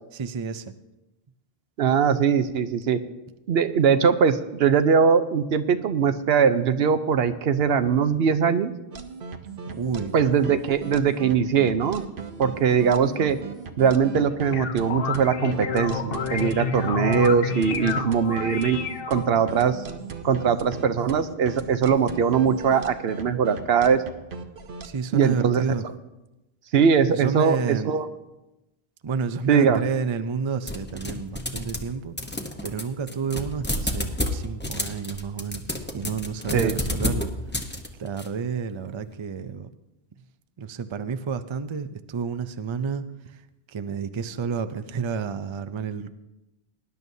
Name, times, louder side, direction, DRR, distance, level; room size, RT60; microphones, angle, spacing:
voice 1, 0.1-0.7 9.7-10.1 24.8-25.8 27.1-27.9 29.0-37.3 38.0-39.7 40.6-43.4 43.7-46.1, right 5 dB, 40° right, 11 dB, 0.5 m, -30 dB
voice 2, 1.8-3.0 3.5-8.7 10.1-12.0 12.4-13.4 13.8-18.8 19.1-19.8 20.2-24.0 25.1-25.6 26.7-28.1 29.5-29.8 36.5-36.8, right 6 dB, 75° right, 11 dB, 0.9 m, -21 dB
sound 1, 8.9-24.9, right 5 dB, 60° right, 1.0 m, -37 dB
sound 2, 14.3-19.5, left 5 dB, 65° left, 0.9 m, -30 dB
sound 3, 30.7-31.9 32.2-38.3, left 1 dB, 10° left, 0.8 m, -30 dB
19.0 x 10.5 x 2.7 m, 0.97 s
omnidirectional pair, 1.1 m